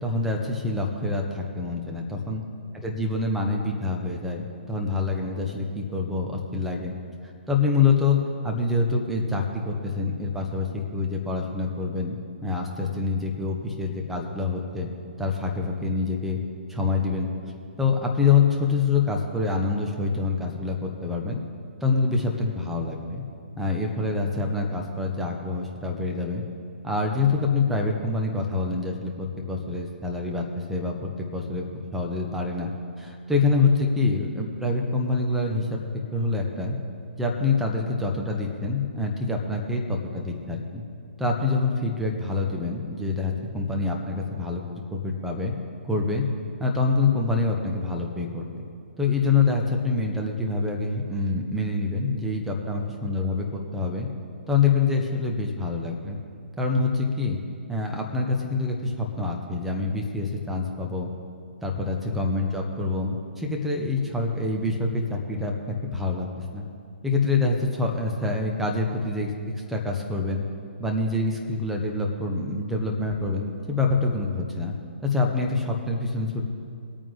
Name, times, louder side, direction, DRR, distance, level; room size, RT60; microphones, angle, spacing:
voice 1, 0.0-2.4 2.7-6.9 7.5-8.2 8.4-12.2 12.4-14.9 15.2-16.4 16.7-17.3 17.8-21.4 21.8-23.2 23.6-26.4 26.8-31.6 31.9-32.7 33.0-35.8 36.1-36.7 37.2-40.8 41.2-44.6 44.9-45.5 45.9-46.2 46.6-48.6 49.0-54.1 54.5-56.2 56.6-57.4 57.7-61.1 61.6-66.6 67.0-69.3 69.7-70.4 70.8-74.7 75.0-76.4, left 3 dB, 5° right, 0 dB, 1.3 m, -26 dB
22.0 x 8.8 x 3.6 m, 2.4 s
figure-of-eight pair, 130°, 7 cm